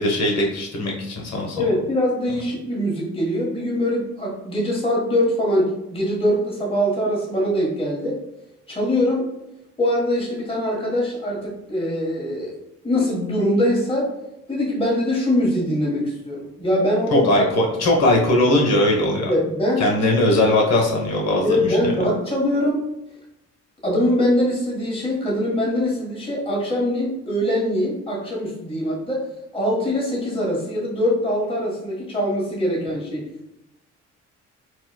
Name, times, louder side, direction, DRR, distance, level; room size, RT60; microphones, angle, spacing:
voice 1, 0.0-1.6 17.1-19.3 19.8-21.6, left 1 dB, 60° left, 0 dB, 1.1 m, -19 dB
voice 2, 1.5-8.2 8.7-9.3 9.8-12.5 12.8-14.1 14.5-17.4 19.2-19.8 21.4-23.0 23.8-33.5, left 1 dB, 20° left, -4 dB, 1.4 m, -23 dB
4.1 x 2.3 x 2.2 m, 0.86 s
cardioid pair, 90°, 30 cm